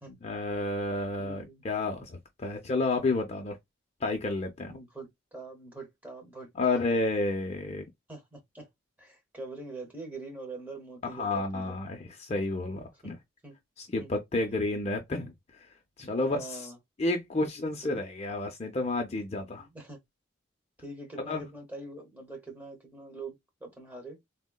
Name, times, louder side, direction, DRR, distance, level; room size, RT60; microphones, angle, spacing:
voice 1, 0.1-3.6 4.0-4.8 6.6-7.8 11.0-13.2 13.8-15.3 16.0-16.7 17.0-19.7 21.3-21.4, left 2 dB, 30° left, 0.4 m, -31 dB
voice 2, 1.2-1.6 4.7-6.8 8.1-8.7 9.0-11.8 13.0-13.1 13.4-13.6 14.0-14.1 16.2-16.8 17.8-18.0 19.6-20.0 20.8-24.2, right 2 dB, 10° right, 0.9 m, -44 dB
3.6 x 2.1 x 2.2 m
head